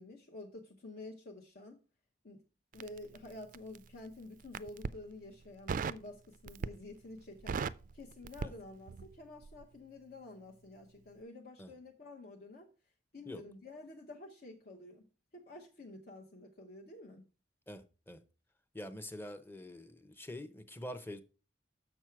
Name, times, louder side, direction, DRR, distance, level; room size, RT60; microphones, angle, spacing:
voice 1, 0.0-1.8 2.2-2.4 2.7-7.6 7.9-12.7 13.1-15.0 15.3-17.2, left 2 dB, 60° left, 0.9 m, -50 dB
Crackle, 2.7-3.9 4.4-5.0 5.7-6.1 6.5-6.9 7.2-9.2 9.4-9.6, right 5 dB, 50° right, 0.3 m, -38 dB
voice 2, 17.7-18.2 18.7-21.2, left 1 dB, 15° left, 0.7 m, -45 dB
6.9 x 6.2 x 4.5 m
head